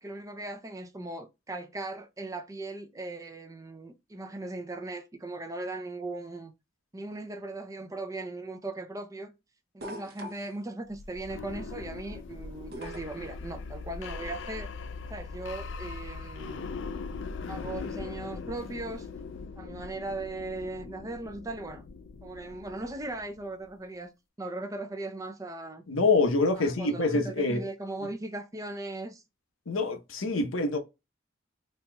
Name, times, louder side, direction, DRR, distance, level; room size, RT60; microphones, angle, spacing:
voice 1, 0.0-6.5 6.9-9.3 9.7-14.7 15.1-16.7 17.5-19.1 19.6-21.8 22.2-24.1 24.4-25.8 26.5-29.2, right 2 dB, 15° right, 0.4 m, -38 dB
sound 1, 9.8-10.6 12.7-13.2 14.8-14.9, equal, 50° right, 0.7 m, -41 dB
sound 2, 10.9-23.7, left 4 dB, 65° left, 0.4 m, -40 dB
voice 2, 25.9-27.7 29.7-30.8, left 3 dB, 90° left, 0.9 m, -26 dB
4.2 x 2.8 x 2.2 m
head